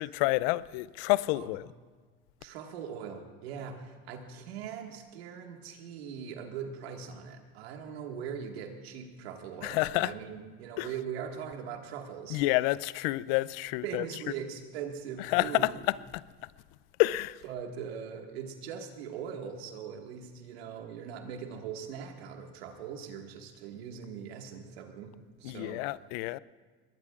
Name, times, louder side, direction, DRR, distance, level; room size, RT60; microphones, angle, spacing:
voice 1, 0.0-1.7 9.6-10.1 10.8-10.9 12.3-14.0 15.3-15.7 17.0-17.4 25.4-26.4, left 19 dB, 75° left, 0.5 m, -28 dB
voice 2, 2.4-12.4 13.8-15.7 17.4-25.8, right 7 dB, 90° right, 1.8 m, -41 dB
21.5 x 18.5 x 2.4 m
supercardioid pair, 100°, 30 cm